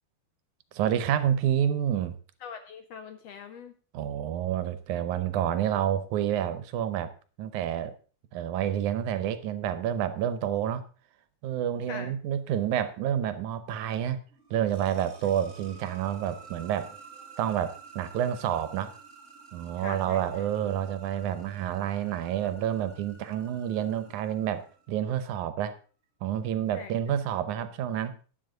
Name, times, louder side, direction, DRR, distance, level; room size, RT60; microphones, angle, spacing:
voice 1, 0.7-2.2 3.9-7.1 7.4-7.9 8.3-10.8 11.4-14.2 14.5-16.9 17.4-18.9 19.5-25.8 26.2-28.2, right 10 dB, 75° right, 12 dB, 2.2 m, -29 dB
voice 2, 2.4-3.7 11.9-12.1 19.8-20.2 26.7-26.9, left 7 dB, 75° left, 8 dB, 1.6 m, -42 dB
sound 1, 14.3-25.1, right 5 dB, 25° right, 2.0 m, -51 dB
11.5 x 10.0 x 3.9 m, 0.38 s
omnidirectional pair, 3.6 m